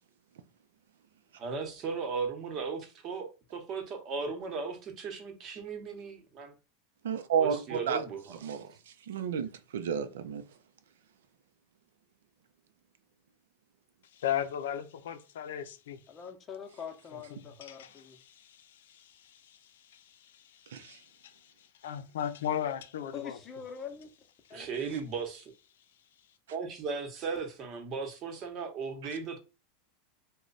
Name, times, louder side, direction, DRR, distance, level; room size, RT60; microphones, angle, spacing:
voice 1, 1.4-6.5 7.4-8.4 24.5-25.5 26.5-29.4, right 5 dB, 40° right, 0.9 m, -36 dB
voice 2, 7.0-8.0 8.4-8.7 9.1-10.4 20.7-21.0, right 7 dB, 90° right, 0.5 m, -31 dB
voice 3, 14.1-16.0 17.1-17.2 17.6-19.6 19.9-21.5 21.8-23.4, left 10 dB, 85° left, 0.5 m, -37 dB
voice 4, 16.1-18.2 23.1-24.1 24.5-24.9, left 7 dB, 30° left, 0.7 m, -44 dB
3.1 x 2.2 x 3.9 m
supercardioid pair, 130°, 0 cm